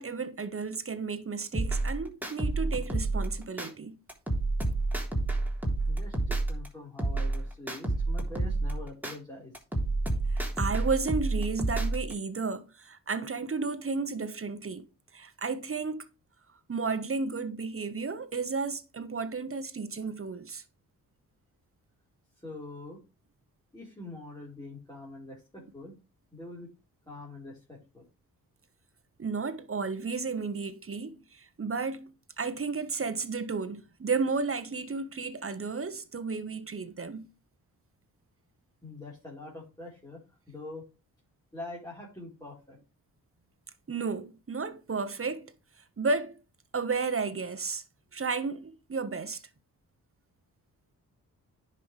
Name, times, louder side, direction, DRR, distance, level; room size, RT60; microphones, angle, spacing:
voice 1, 0.0-4.0 10.3-14.9 15.1-16.0 16.7-20.6 29.2-32.1 32.4-37.2 43.9-45.5 46.0-46.4 46.7-47.8 48.1-49.4, right 4 dB, 35° right, 1.3 m, -33 dB
sound 1, 1.5-3.7 4.1-6.7 7.0-9.1 9.5-12.1, right 2 dB, 5° right, 3.4 m, -29 dB
voice 2, 5.9-9.5 22.4-23.0 23.7-25.9 26.3-26.7 27.1-28.0 38.8-40.2 40.5-40.9 41.5-42.8, left 2 dB, 10° left, 4.3 m, -44 dB
10.0 x 5.6 x 3.3 m
cardioid pair, 60°, 36 cm